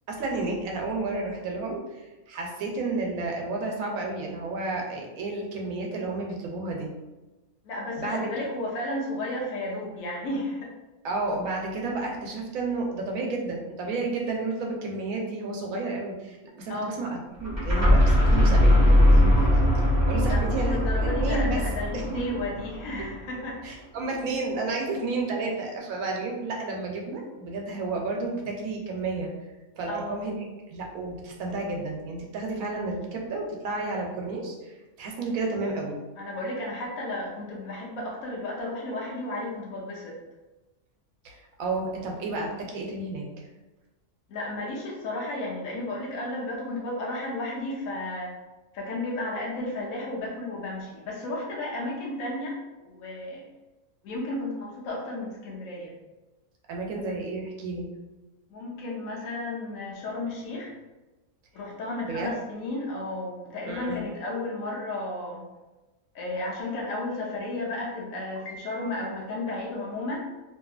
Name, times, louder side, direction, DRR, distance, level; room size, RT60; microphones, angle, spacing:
voice 1, 0.1-6.9 8.0-8.2 11.0-21.6 21.9-22.2 23.6-29.3 29.8-30.4 30.7-36.0 41.2-43.2 56.7-57.9 62.1-62.3 63.7-64.0, right 3 dB, 80° right, 0 dB, 1.0 m, -31 dB
voice 2, 7.6-10.7 16.7-17.0 20.3-23.6 29.9-30.2 36.2-40.2 44.3-48.4 48.7-53.5 54.0-55.9 58.5-60.7 61.5-65.5 66.1-70.2, left 2 dB, 80° left, -3 dB, 1.1 m, -33 dB
sound 1, 17.4-23.2, left 1 dB, 15° right, 0.6 m, -21 dB
2.7 x 2.6 x 2.3 m, 1.1 s
omnidirectional pair, 1.5 m